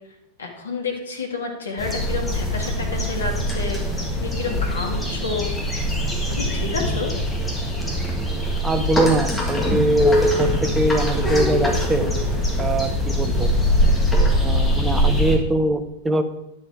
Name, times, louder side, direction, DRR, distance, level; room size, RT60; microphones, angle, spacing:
voice 1, 0.4-3.8 4.2-5.5 6.3-7.1, left 4 dB, 70° left, 2 dB, 1.7 m, -29 dB
sound 1, 1.8-15.4, equal, 10° left, 1.9 m, -22 dB
voice 2, 8.6-12.0 12.6-13.5 14.4-16.2, right 2 dB, 15° right, 9 dB, 0.8 m, -23 dB
10.0 x 6.4 x 4.8 m, 0.85 s
figure-of-eight pair, 90°, 0 cm